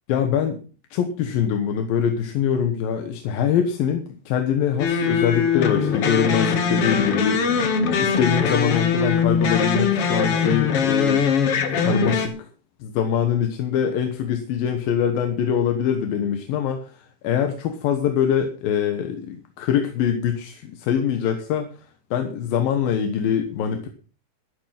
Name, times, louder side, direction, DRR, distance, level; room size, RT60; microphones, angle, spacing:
voice 1, 0.1-0.6 0.9-7.7 8.0-11.3 11.8-12.5 12.8-21.7 22.1-23.9, left 8 dB, 75° left, 6 dB, 2.9 m, -23 dB
sound 1, 4.8-12.3, left 6 dB, 50° left, 2.0 m, -21 dB
12.0 x 11.5 x 5.8 m, 0.38 s
omnidirectional pair, 4.4 m